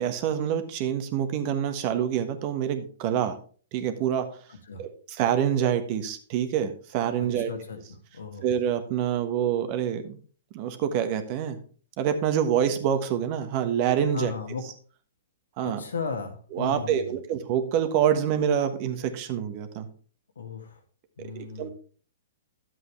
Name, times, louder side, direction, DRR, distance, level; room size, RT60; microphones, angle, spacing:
voice 1, 0.0-3.4 3.7-4.3 4.8-7.5 8.4-10.2 10.5-11.6 12.0-14.3 15.6-15.8 16.5-19.9 21.2-21.7, right 9 dB, 45° right, 8 dB, 1.3 m, -26 dB
voice 2, 7.2-8.5 14.1-14.6 15.6-17.2 20.4-20.8 21.2-21.7, left 5 dB, 80° left, 5 dB, 1.8 m, -36 dB
10.5 x 7.8 x 3.3 m, 0.42 s
hypercardioid pair, 120°, 0 cm